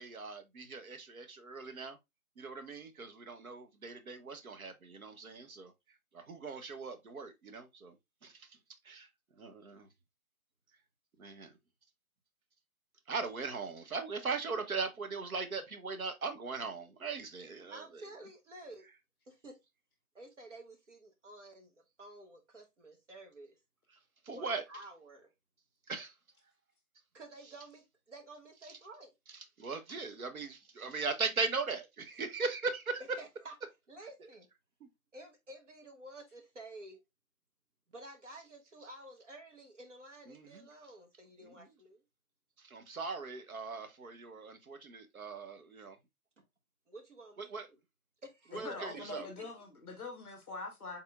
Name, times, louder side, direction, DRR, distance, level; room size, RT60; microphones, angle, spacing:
voice 1, 0.0-2.0 2.4-5.7 6.1-7.9 8.2-8.5 8.8-9.1 9.4-9.9 11.2-11.5 13.1-18.0 24.3-24.6 25.9-26.1 29.6-33.0 40.3-40.7 41.4-41.5 42.6-46.0 47.4-47.7 48.5-49.3, right 4 dB, 70° right, 1.0 m, -39 dB
voice 2, 17.7-18.9 19.3-19.5 20.1-23.6 24.3-25.3 27.1-29.1 33.2-33.5 33.9-34.5 35.1-37.0 37.9-42.0 46.9-47.8 48.2-48.7 49.1-49.4, right 2 dB, 55° right, 1.2 m, -51 dB
voice 3, 48.5-51.0, left 3 dB, 20° left, 0.8 m, -43 dB
4.5 x 3.6 x 2.3 m
hypercardioid pair, 170°, 44 cm